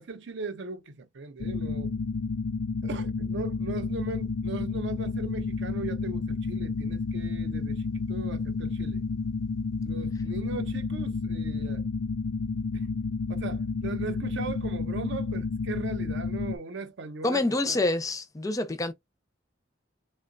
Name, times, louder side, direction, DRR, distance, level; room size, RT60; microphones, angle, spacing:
voice 1, 0.0-1.9 2.8-9.0 9.8-11.8 12.7-12.9 13.3-17.8, right 4 dB, 70° right, 0.6 m, -38 dB
sound 1, 1.4-16.6, left 4 dB, 90° left, 0.4 m, -31 dB
voice 2, 17.2-18.9, left 2 dB, 20° left, 0.5 m, -27 dB
3.7 x 2.2 x 2.4 m
head